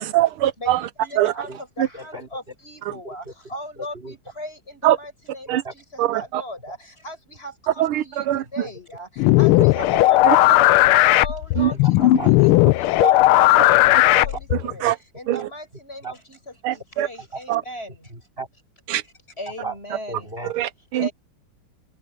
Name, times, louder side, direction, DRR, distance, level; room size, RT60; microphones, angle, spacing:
voice 1, 0.0-0.8 1.2-1.3 4.8-5.0 5.5-5.6 6.0-6.4 7.8-8.4 10.3-10.4 11.6-11.7 13.0-13.1 13.6-13.7 14.8-15.0 15.3-15.4 16.6-17.1 17.5-17.6 18.9-19.0 20.5-21.1, right 13 dB, 80° right, 1.6 m, -21 dB
voice 2, 0.6-1.5 1.8-3.2 3.5-5.8 6.1-6.8 7.0-8.3 8.5-9.1 9.4-10.2 10.9-12.0 12.4-12.5 12.8-13.8 14.1-14.8 15.2-16.4 17.0-17.9 19.4-20.3 21.0-21.1, left 1 dB, 25° left, 7.3 m, -37 dB
voice 3, 1.2-1.6 1.9-2.3 2.9-3.3 3.9-4.2 5.5-5.7 6.7-6.8 8.3-8.5 9.9-10.0 11.7-12.3 13.7-14.4 14.7-14.9 15.4-15.5 16.0-16.1 17.3-17.4 18.1-18.5 19.6-19.8 20.1-20.5, right 3 dB, 25° right, 3.6 m, -36 dB
sound 1, 9.2-14.7, left 17 dB, 90° left, 1.5 m, -16 dB
open air
omnidirectional pair, 2.3 m